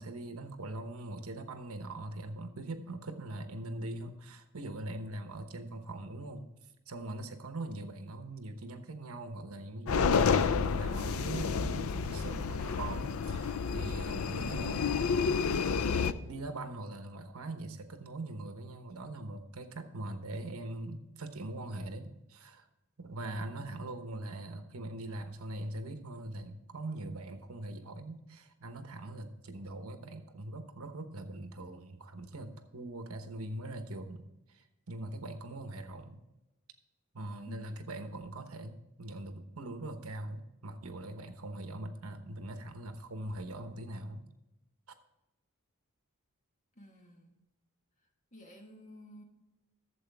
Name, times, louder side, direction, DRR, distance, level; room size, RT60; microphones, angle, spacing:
voice 1, 0.0-6.5 6.9-15.0 16.1-22.7 23.0-36.2 37.1-44.3, right 2 dB, 70° right, 7 dB, 1.0 m, -42 dB
sound 1, 9.9-16.1, left 5 dB, 65° left, 0.5 m, -30 dB
voice 2, 37.5-37.9 46.7-47.3 48.3-49.2, left 1 dB, 35° left, 2 dB, 1.7 m, -52 dB
12.5 x 7.5 x 3.5 m, 0.98 s
head